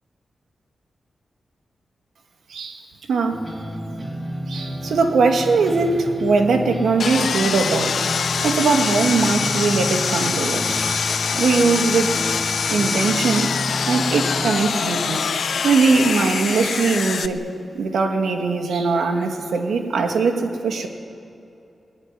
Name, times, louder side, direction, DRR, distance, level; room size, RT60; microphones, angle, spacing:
voice 1, 2.5-2.8 3.1-3.4 4.5-8.0 8.4-11.1 11.4-12.1 12.7-13.6 13.9-15.3 15.6-17.4 17.7-20.9, right 4 dB, 90° right, 4 dB, 2.5 m, -20 dB
sound 1, 3.3-14.5, equal, 35° right, 3.6 m, -31 dB
Sawing, 7.0-17.3, left 6 dB, 70° left, 1.0 m, -24 dB
21.0 x 18.5 x 10.0 m, 2.6 s
cardioid pair, 80°, 0 cm